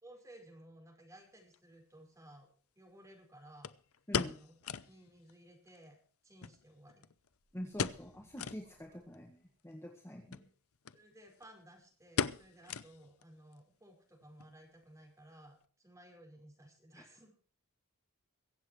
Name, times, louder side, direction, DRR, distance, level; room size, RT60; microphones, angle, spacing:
voice 1, 0.0-2.5 2.8-3.7 4.3-6.0 6.2-7.0 10.1-10.5 10.9-17.4, right 1 dB, 15° right, 1 dB, 5.5 m, -58 dB
sound 1, 1.5-1.6 3.6-5.0 5.3-5.4 5.7-5.8 6.4-7.3 7.7-8.1 8.4-8.6 9.1-9.2 10.2-10.5 10.8-11.0 11.3-11.6 12.2-13.2 13.5-13.6 14.2-14.5 14.8-14.9, left 6 dB, 75° left, 0.7 m, -37 dB
sound 2, 7.1-9.8, equal, 50° right, 6.4 m, -68 dB
voice 2, 7.5-10.5, equal, 10° left, 2 dB, 1.8 m, -45 dB
23.5 x 8.3 x 4.6 m, 0.43 s
head